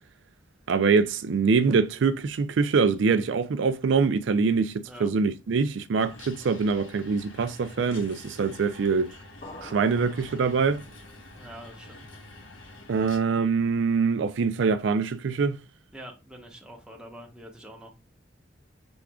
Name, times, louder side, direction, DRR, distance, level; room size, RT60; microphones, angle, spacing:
voice 1, 0.7-9.1 9.6-10.8 12.9-15.6, right 5 dB, 65° right, 0.4 m, -24 dB
sound 1, 6.0-13.2, left 2 dB, 80° left, 1.3 m, -47 dB
sound 2, 9.4-11.1, left 2 dB, 40° left, 0.6 m, -46 dB
voice 2, 11.4-12.0 15.9-17.9, right 1 dB, 5° right, 1.1 m, -45 dB
6.0 x 3.6 x 2.3 m
head